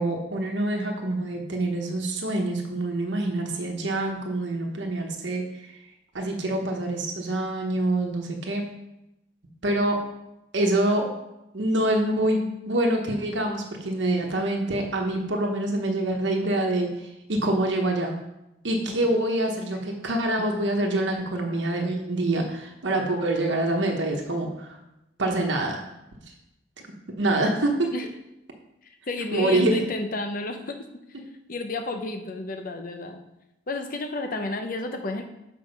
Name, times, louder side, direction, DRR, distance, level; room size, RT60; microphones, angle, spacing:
voice 1, 0.0-5.4 6.1-8.6 9.6-10.0 10.5-11.1 11.5-18.1 18.6-24.8 25.2-25.8 27.2-27.9 29.3-29.8 31.1-31.2, right 1 dB, 80° right, 1 dB, 1.1 m, -25 dB
voice 2, 29.1-30.8 31.5-33.2 33.7-35.2, left 2 dB, 50° left, 5 dB, 0.8 m, -31 dB
7.0 x 5.0 x 5.3 m, 0.89 s
head